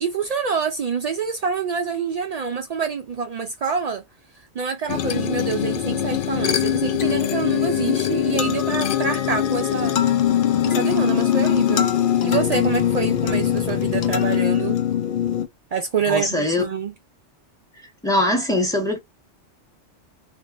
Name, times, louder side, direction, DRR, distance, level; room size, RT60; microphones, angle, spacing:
voice 1, 0.0-4.0 4.5-10.0 10.6-11.9 12.2-14.8 15.7-16.9, right 6 dB, 70° right, 0.3 m, -26 dB
sound 1, 4.9-15.5, left 10 dB, 60° left, 0.6 m, -22 dB
voice 2, 16.1-16.6 18.0-19.0, left 1 dB, 5° left, 1.3 m, -21 dB
3.3 x 2.7 x 2.5 m
omnidirectional pair, 1.2 m